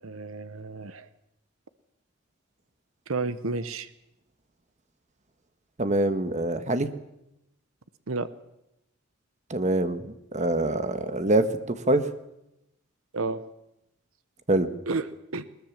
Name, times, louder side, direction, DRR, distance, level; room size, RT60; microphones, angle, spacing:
voice 1, 0.0-1.1 3.1-3.9 8.1-8.3 13.1-13.5 14.9-15.5, right 3 dB, 85° right, 13 dB, 1.0 m, -31 dB
voice 2, 5.8-6.9 9.5-12.0 14.5-14.7, right 2 dB, 35° right, 10 dB, 1.4 m, -25 dB
21.0 x 20.0 x 7.3 m, 0.86 s
head